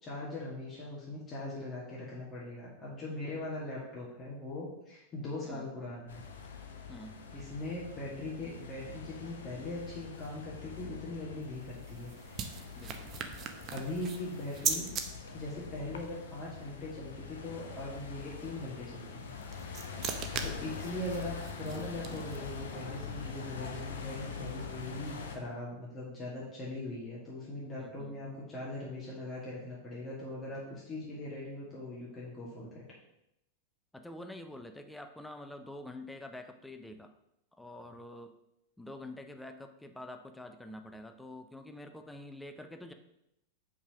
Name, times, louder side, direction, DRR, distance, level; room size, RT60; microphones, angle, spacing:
voice 1, 0.0-6.2 7.3-12.4 13.7-15.1 15.3-19.3 20.4-32.8, left 2 dB, 25° left, -7 dB, 2.1 m, -41 dB
sound 1, 6.1-25.4, left 5 dB, 65° left, 0.9 m, -44 dB
voice 2, 6.9-7.2 12.8-13.1 27.8-28.2 33.9-37.1 37.6-38.3 38.8-42.9, left 1 dB, 5° left, 7 dB, 0.6 m, -47 dB
Lip Gloss, 11.4-15.0 19.2-22.5, right 7 dB, 30° right, 0.8 m, -39 dB
5.5 x 5.0 x 6.0 m, 0.83 s
figure-of-eight pair, 90°, 0 cm